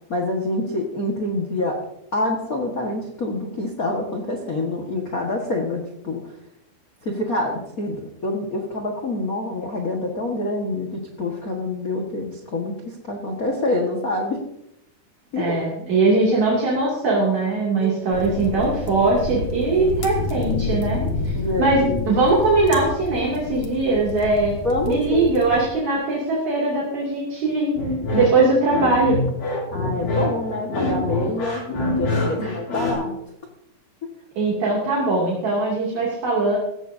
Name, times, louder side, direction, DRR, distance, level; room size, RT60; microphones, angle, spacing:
voice 1, 0.1-1.8 2.1-6.2 7.0-14.4 15.3-15.6 17.8-18.0 21.3-22.0 24.6-25.3 29.7-33.1, left 2 dB, 70° left, 0 dB, 0.8 m, -26 dB
voice 2, 15.4-21.0 21.6-24.5 24.8-27.7 28.1-29.2 32.4-32.5 34.4-36.6, right 3 dB, 50° right, -5 dB, 3.7 m, -20 dB
sound 1, 18.1-25.7, left 3 dB, 55° left, 2.1 m, -29 dB
sound 2, 27.7-32.9, left 2 dB, 85° left, 7.6 m, -25 dB
17.0 x 14.5 x 2.7 m, 0.80 s
omnidirectional pair, 4.3 m